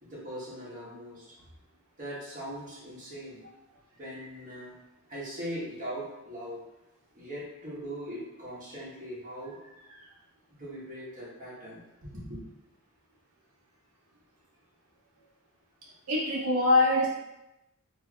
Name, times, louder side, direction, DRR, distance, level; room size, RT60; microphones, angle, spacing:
voice 1, 0.0-1.3 2.0-3.4 4.0-4.7 5.1-6.6 7.1-9.6 10.5-12.4, equal, 35° right, -7 dB, 1.2 m, -40 dB
voice 2, 16.1-17.1, left 2 dB, 85° right, -4 dB, 0.7 m, -23 dB
4.3 x 2.7 x 2.3 m, 0.95 s
head